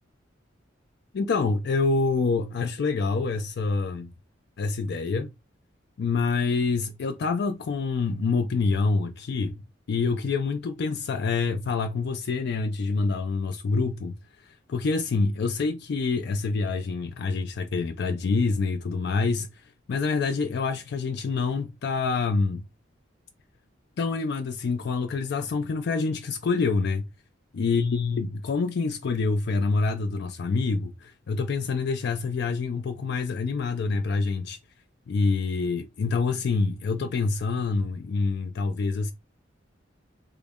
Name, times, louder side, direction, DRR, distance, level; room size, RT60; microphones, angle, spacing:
voice 1, 1.1-4.1 4.6-5.3 6.0-9.6 9.9-14.2 14.4-19.6 19.9-22.7 24.0-27.0 27.6-34.6 35.1-39.1, left 4 dB, 55° left, 0.4 m, -26 dB
3.8 x 2.1 x 3.5 m
head